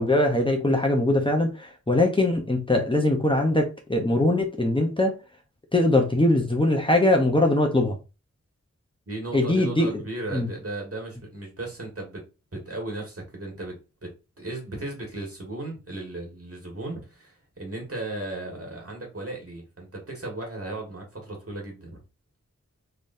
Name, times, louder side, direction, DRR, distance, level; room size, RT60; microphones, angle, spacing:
voice 1, 0.0-5.1 5.7-7.9 9.3-10.0 10.3-10.5, left 1 dB, 15° left, 0.8 m, -22 dB
voice 2, 9.1-12.2 12.5-22.0, right 2 dB, 50° right, 1.7 m, -36 dB
4.0 x 3.3 x 2.6 m
wide cardioid pair, 80°, 29 cm